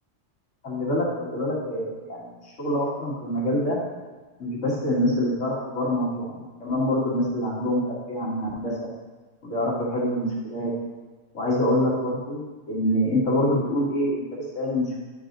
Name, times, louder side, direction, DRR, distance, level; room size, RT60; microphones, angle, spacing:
voice 1, 0.6-3.8 4.4-7.8 8.1-8.9 9.4-10.7 11.3-15.0, left 1 dB, 75° left, -4 dB, 2.1 m, -26 dB
9.8 x 4.1 x 3.9 m, 1.3 s
omnidirectional pair, 1.3 m